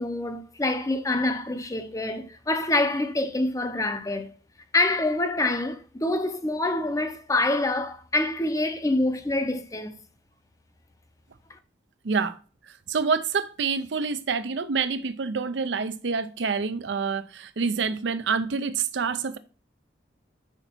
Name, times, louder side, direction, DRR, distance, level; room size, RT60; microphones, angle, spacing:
voice 1, 0.0-4.3 4.7-10.0 11.5-11.6, left 2 dB, 20° left, 0.6 m, -26 dB
voice 2, 12.0-12.4 12.9-19.4, right 5 dB, 80° right, 0.6 m, -27 dB
5.8 x 3.9 x 4.4 m
head